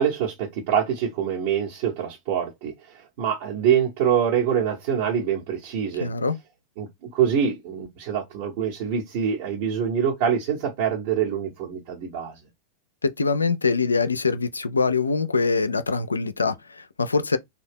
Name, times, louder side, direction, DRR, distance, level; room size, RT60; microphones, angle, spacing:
voice 1, 0.0-6.1 6.8-12.4, right 8 dB, 55° right, 1.1 m, -25 dB
voice 2, 6.0-6.4 13.0-17.4, left 4 dB, 85° left, 0.3 m, -23 dB
2.7 x 2.2 x 3.5 m
figure-of-eight pair, 95°, 0 cm